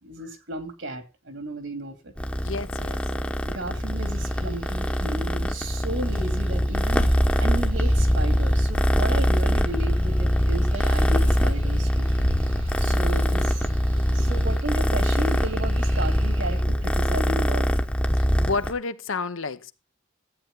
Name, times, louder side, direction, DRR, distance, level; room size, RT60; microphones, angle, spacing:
voice 1, 0.0-2.1 3.4-7.1 7.4-12.1 12.8-13.6 14.1-17.7, right 1 dB, 60° right, 2.6 m, -34 dB
Purr, 2.2-18.7, equal, 5° left, 1.0 m, -23 dB
voice 2, 2.4-3.0 14.0-14.3 18.1-19.7, left 4 dB, 75° left, 0.9 m, -31 dB
sound 1, 4.0-16.6, equal, 85° right, 2.2 m, -35 dB
14.0 x 8.8 x 3.8 m
head